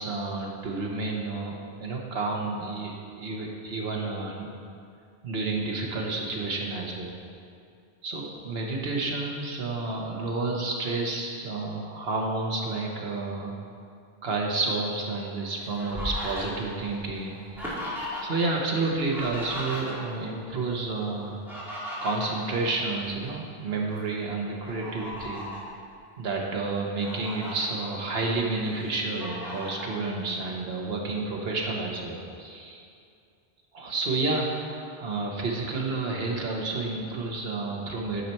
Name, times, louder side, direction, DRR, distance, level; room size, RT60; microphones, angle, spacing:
voice 1, 0.0-4.5 5.2-7.1 8.0-13.5 14.2-17.8 18.2-21.4 22.0-25.5 26.2-32.8 33.7-38.2, right 3 dB, 70° right, -1 dB, 1.3 m, -30 dB
Fowl, 15.2-18.5 18.8-20.3 21.2-23.3 23.8-24.0 24.6-25.7 26.3-26.4 26.8-27.5 28.1-28.8 29.2-29.9, left 1 dB, ahead, 1.9 m, -37 dB
9.8 x 5.8 x 4.4 m, 2.4 s
omnidirectional pair, 1.1 m